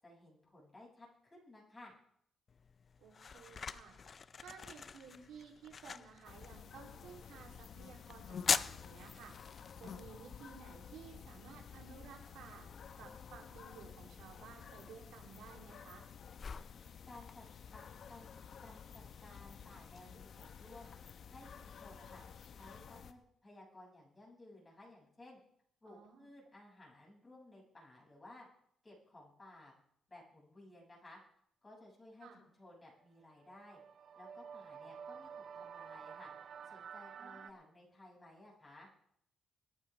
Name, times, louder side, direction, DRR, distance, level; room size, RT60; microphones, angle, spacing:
voice 1, 0.0-2.0 17.0-17.4 17.7-17.8 18.1-18.3 18.6-20.9 21.3-22.2 22.5-25.4 25.8-28.5 28.8-29.7 30.1-31.2 31.6-33.8 34.2-36.3 36.6-38.9, left 2 dB, 25° left, -3 dB, 7.1 m, -57 dB
sound 1, 2.5-20.0, left 5 dB, 40° left, 0.5 m, -45 dB
voice 2, 3.0-4.0 4.4-12.7 13.0-16.0 25.8-26.3 32.2-32.4 37.2-37.5, right 6 dB, 85° right, 0 dB, 3.4 m, -55 dB
sound 2, 6.2-23.1, left 7 dB, 60° left, 1.1 m, -52 dB
sound 3, 33.2-37.5, right 7 dB, 60° right, 0.7 m, -50 dB
25.0 x 9.7 x 3.5 m, 0.69 s
cardioid pair, 90°, 0 cm